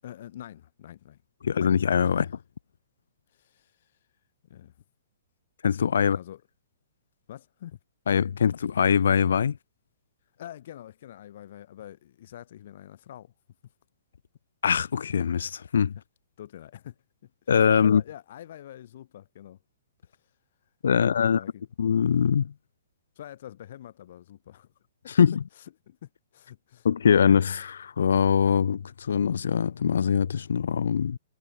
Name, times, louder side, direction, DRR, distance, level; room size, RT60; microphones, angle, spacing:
voice 1, 0.0-1.2 3.3-3.9 4.5-4.7 6.0-6.4 7.3-7.8 10.4-13.3 16.4-17.0 17.2-17.5 17.8-19.6 20.1-20.2 20.9-21.7 23.2-24.7 25.6-26.9, left 11 dB, 60° left, 4.3 m, -45 dB
voice 2, 1.4-2.4 5.6-6.2 8.1-9.6 14.6-15.9 17.5-18.0 20.8-21.4 21.8-22.5 25.2-25.4 26.8-31.2, left 7 dB, 75° left, 1.6 m, -22 dB
hypercardioid pair, 140°, 0 cm